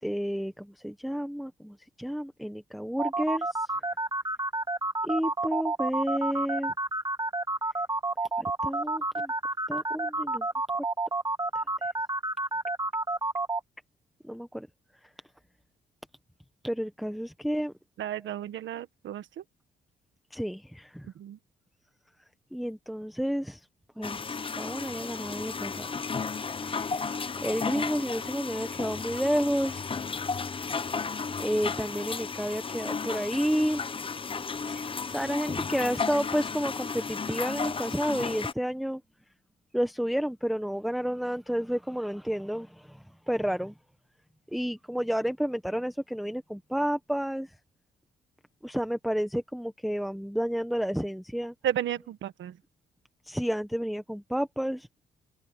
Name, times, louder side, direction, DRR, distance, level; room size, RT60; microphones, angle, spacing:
voice 1, 0.0-4.0 5.0-6.7 8.4-9.3 9.7-10.5 11.5-11.9 14.2-14.7 14.9-15.1 16.6-17.7 20.3-21.1 22.5-23.7 24.0-25.9 26.6-30.0 31.4-33.8 34.7-39.0 39.7-43.8 44.5-47.5 48.6-51.5 53.2-54.9, equal, ahead, 1.1 m, -31 dB
sound 1, 3.0-13.6, right 2 dB, 20° right, 1.7 m, -29 dB
voice 2, 18.0-19.4 21.0-21.4 51.6-52.6, right 10 dB, 75° right, 1.6 m, -33 dB
sound 2, 24.0-38.5, left 5 dB, 25° left, 0.8 m, -34 dB
open air
cardioid pair, 90°, 20 cm